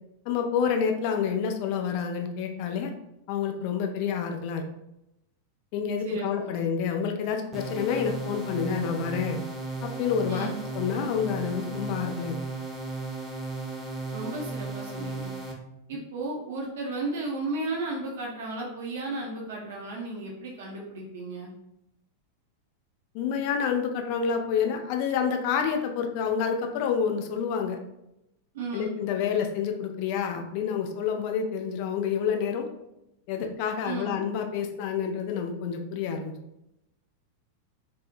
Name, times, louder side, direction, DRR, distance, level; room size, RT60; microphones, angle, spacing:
voice 1, 0.3-2.9 3.3-4.7 5.7-9.4 9.8-10.5 10.7-12.3 23.1-27.8 28.7-32.6 33.3-36.3, left 7 dB, 45° left, 4 dB, 0.3 m, -28 dB
voice 2, 6.0-6.6 10.3-10.6 14.1-15.3 15.9-21.5 28.5-28.9 33.8-34.2, right 2 dB, 60° right, -3 dB, 0.5 m, -34 dB
sound 1, 7.5-15.5, right 3 dB, 15° right, 0.6 m, -35 dB
2.6 x 2.0 x 2.4 m, 0.85 s
figure-of-eight pair, 90°, 0 cm